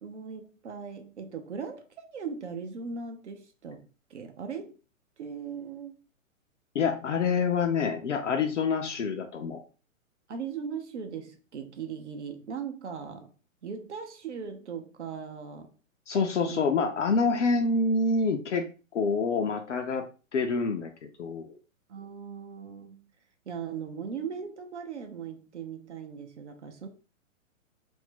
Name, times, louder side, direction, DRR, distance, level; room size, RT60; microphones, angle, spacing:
voice 1, 0.0-4.8 5.2-6.0 10.3-13.3 13.6-15.7 16.5-16.9 21.9-23.1 23.5-26.9, right 6 dB, 55° right, 0.6 m, -39 dB
voice 2, 6.7-9.6 16.1-18.6 18.9-20.1 20.3-21.6, left 4 dB, 60° left, 0.6 m, -27 dB
2.5 x 2.1 x 3.5 m
figure-of-eight pair, 120°, 41 cm